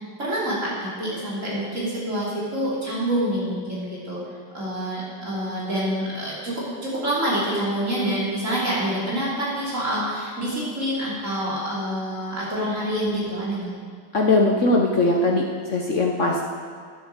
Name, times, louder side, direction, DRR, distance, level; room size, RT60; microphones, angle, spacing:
voice 1, 0.2-4.2 4.5-13.7, right 1 dB, 35° right, -7 dB, 3.2 m, -27 dB
voice 2, 14.1-16.4, left 2 dB, 60° left, 1 dB, 0.8 m, -20 dB
10.0 x 7.9 x 6.6 m, 2.1 s
omnidirectional pair, 2.3 m